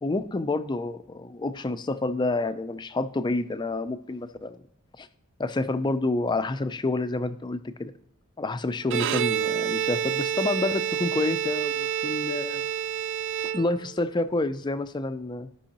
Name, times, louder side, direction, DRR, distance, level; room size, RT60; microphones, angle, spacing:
voice 1, 0.0-4.6 5.0-5.1 5.4-7.9 8.4-12.6 13.5-15.5, left 2 dB, 20° left, 12 dB, 0.4 m, -28 dB
Bowed string instrument, 8.8-14.1, right 9 dB, 55° right, 0.3 m, -28 dB
14.5 x 5.4 x 2.9 m, 0.68 s
head